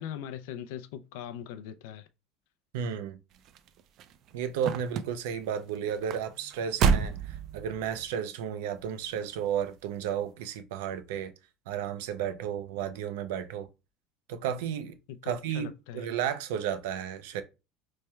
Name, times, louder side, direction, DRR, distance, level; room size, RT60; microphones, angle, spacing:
voice 1, 0.0-2.1 2.8-2.9 15.1-16.1, left 10 dB, 70° left, 0.4 m, -41 dB
voice 2, 2.7-3.2 4.3-11.3 11.7-13.7 14.3-14.9 15.2-17.4, right 8 dB, 90° right, 0.6 m, -33 dB
sound 1, 3.3-8.1 8.8-9.2 9.5-9.6, right 6 dB, 40° right, 0.3 m, -30 dB
4.2 x 3.2 x 2.3 m
cardioid pair, 170°, 0 cm